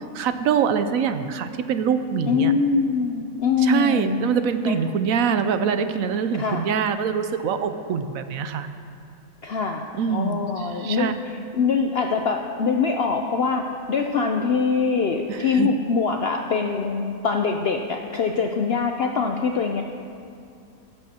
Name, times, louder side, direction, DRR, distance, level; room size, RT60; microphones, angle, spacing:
voice 1, 0.0-2.5 3.6-8.7 9.9-11.1 15.3-15.7, right 7 dB, 70° right, 9 dB, 0.9 m, -24 dB
voice 2, 2.3-4.3 4.6-4.8 6.3-6.7 9.4-19.8, left 5 dB, 65° left, 3 dB, 0.6 m, -23 dB
17.0 x 12.0 x 2.8 m, 2.5 s
omnidirectional pair, 1.6 m